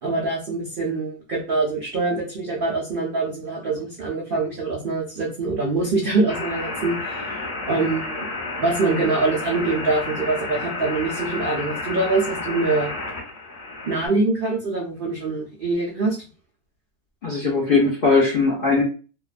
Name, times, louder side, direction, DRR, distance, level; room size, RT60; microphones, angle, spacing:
voice 1, 0.0-8.3 8.6-12.9 13.9-16.2, right 3 dB, 80° right, -2 dB, 0.4 m, -24 dB
sound 1, 6.3-14.1, left 2 dB, 30° left, 1.1 m, -31 dB
voice 2, 17.2-18.8, left 4 dB, 60° left, -4 dB, 0.5 m, -19 dB
2.6 x 2.2 x 2.3 m, 0.35 s
omnidirectional pair, 1.7 m